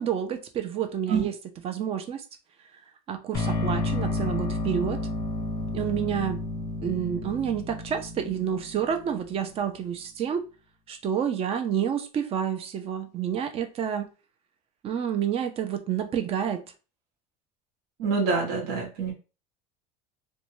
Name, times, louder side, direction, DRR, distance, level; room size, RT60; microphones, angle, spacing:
voice 1, 0.0-1.4 1.6-2.2 3.1-5.0 5.7-6.4 6.8-10.4 10.9-14.1 14.8-16.6, right 8 dB, 30° right, 0.5 m, -29 dB
sound 1, 3.3-9.4, left 2 dB, 20° left, 0.6 m, -31 dB
voice 2, 18.0-19.1, right 5 dB, 75° right, 0.9 m, -26 dB
2.6 x 2.2 x 3.0 m
supercardioid pair, 130°, 19 cm